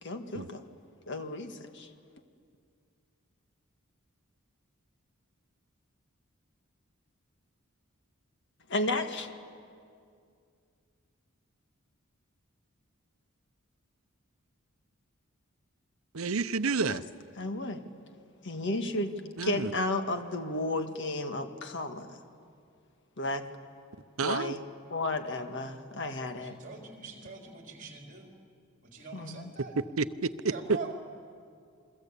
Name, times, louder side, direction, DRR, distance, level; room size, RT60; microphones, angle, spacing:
voice 1, 0.0-0.6 1.1-1.9 8.7-9.3 16.9-17.0 17.4-17.8 18.4-19.2 19.4-22.2 23.2-23.5 24.2-24.6 24.9-26.6 29.1-29.5, left 2 dB, 60° left, 6 dB, 1.7 m, -33 dB
voice 2, 16.1-17.0 19.4-19.7 24.2-24.5 30.0-30.3, right 4 dB, 70° right, 13 dB, 0.8 m, -30 dB
voice 3, 26.4-28.3 28.8-29.7 30.4-30.9, right 5 dB, 35° right, 1 dB, 3.8 m, -44 dB
29.0 x 22.5 x 8.4 m, 2.4 s
head